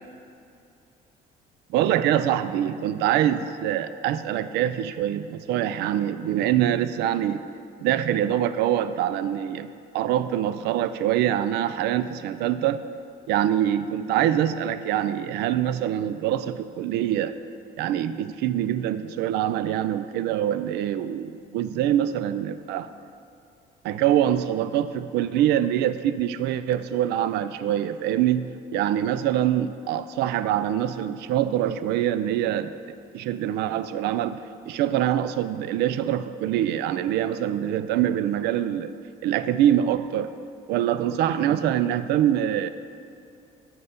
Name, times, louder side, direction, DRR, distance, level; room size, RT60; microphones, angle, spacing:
voice 1, 1.7-7.4 7.8-9.7 9.9-12.8 13.3-17.4 17.8-22.9 23.8-28.5 28.7-32.7 33.1-38.9 39.2-40.3 40.7-42.7, right 11 dB, 80° right, 13 dB, 0.4 m, -24 dB
9.5 x 3.9 x 5.7 m, 2.6 s
cardioid pair, 110°, 17 cm